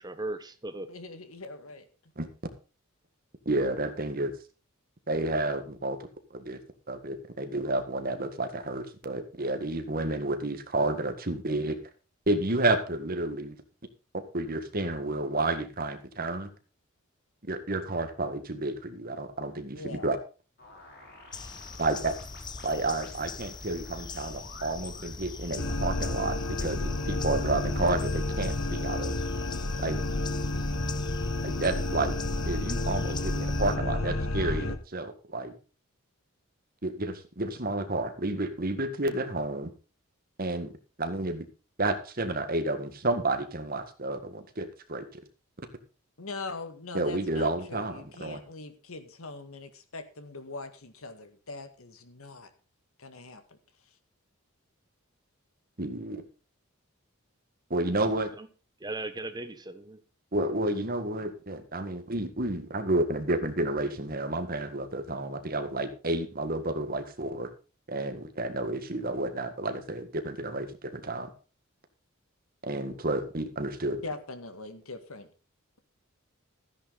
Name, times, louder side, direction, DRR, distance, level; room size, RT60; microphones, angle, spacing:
voice 1, 0.0-0.9 58.4-58.5 58.8-60.0, right 2 dB, 20° right, 1.1 m, -37 dB
voice 2, 0.9-1.9 19.7-20.1 28.8-29.0 46.2-52.5 53.0-53.4 74.0-75.3, left 3 dB, 85° left, 2.0 m, -42 dB
voice 3, 3.5-4.3 5.1-6.6 6.9-11.8 12.3-13.6 14.3-16.5 17.5-20.2 21.8-22.1 22.6-29.2 29.8-30.0 31.4-32.2 32.5-35.5 36.8-39.7 40.4-40.7 41.0-41.5 41.8-45.1 46.9-48.4 55.8-56.2 57.7-58.3 60.3-67.5 67.9-71.3 72.6-74.0, right 2 dB, 45° right, 1.8 m, -30 dB
sound 1, 20.6-25.2, left 2 dB, 50° left, 4.6 m, -52 dB
sound 2, 21.3-33.8, left 4 dB, 20° left, 0.6 m, -41 dB
sound 3, 25.6-34.8, left 2 dB, 65° left, 1.3 m, -30 dB
14.0 x 10.0 x 4.1 m
head